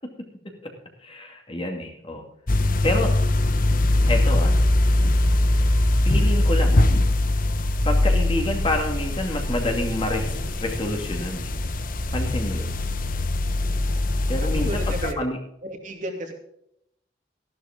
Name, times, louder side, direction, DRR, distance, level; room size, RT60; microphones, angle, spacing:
voice 1, 1.0-2.2 2.8-3.1 4.1-4.5 6.0-6.9 7.8-11.5 12.1-12.8 14.3-15.4, left 1 dB, 30° left, 2 dB, 2.5 m, -28 dB
sound 1, 2.5-15.1, left 1 dB, 50° left, 1.0 m, -22 dB
voice 2, 14.4-15.2 15.6-16.3, equal, 45° right, 3 dB, 2.7 m, -33 dB
15.0 x 12.0 x 3.8 m, 0.74 s
head